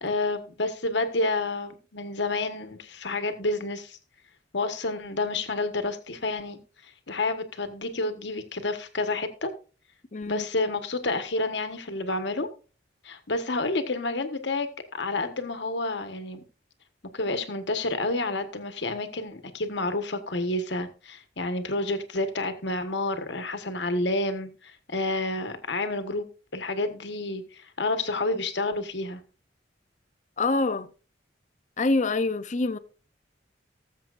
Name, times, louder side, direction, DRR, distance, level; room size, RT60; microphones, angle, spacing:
voice 1, 0.0-4.0 4.5-6.6 7.1-9.5 10.3-12.5 13.0-16.4 17.1-26.3 26.5-29.2, left 2 dB, 70° left, 1.3 m, -29 dB
voice 2, 10.1-10.5 30.4-30.9 31.8-32.8, left 3 dB, 40° left, 0.6 m, -26 dB
19.0 x 7.4 x 2.5 m
head